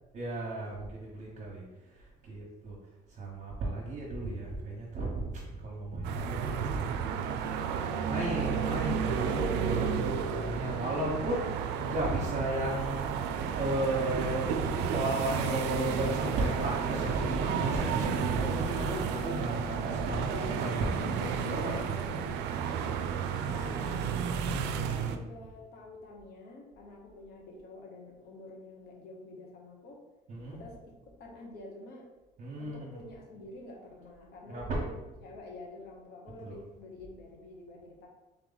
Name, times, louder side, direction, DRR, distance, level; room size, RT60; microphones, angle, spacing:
voice 1, 0.1-1.6 2.2-2.8 3.2-6.8 8.1-13.1 13.6-22.2 30.3-30.6 32.4-32.9 34.5-34.8 36.5-36.6, right 1 dB, 50° right, -5 dB, 1.0 m, -34 dB
sound 1, 6.0-25.2, right 6 dB, 90° right, 0.4 m, -32 dB
voice 2, 6.2-7.3 23.4-24.1 24.6-30.0 30.5-30.8 31.1-32.1 32.6-38.1, left 2 dB, 70° left, -1 dB, 1.1 m, -48 dB
3.6 x 3.1 x 3.9 m, 1.1 s
cardioid pair, 110°, 17 cm